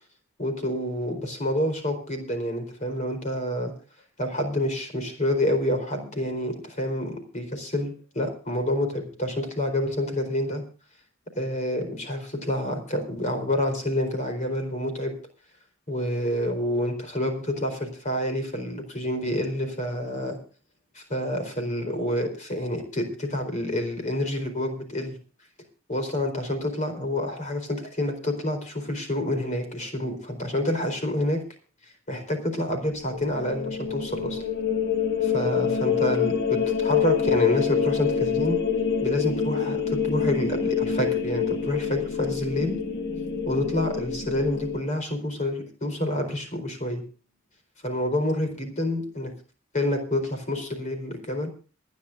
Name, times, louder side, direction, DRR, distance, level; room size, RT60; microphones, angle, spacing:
voice 1, 0.4-3.7 4.2-10.6 11.3-15.2 15.9-20.4 20.9-25.2 25.9-31.4 32.1-34.4 35.2-38.6 39.0-42.8 43.5-47.0 47.8-49.3 49.7-51.5, left 1 dB, 35° left, 5 dB, 4.2 m, -28 dB
sound 1, 32.9-44.8, left 7 dB, 55° left, 2.0 m, -26 dB
27.5 x 10.5 x 2.6 m, 0.37 s
head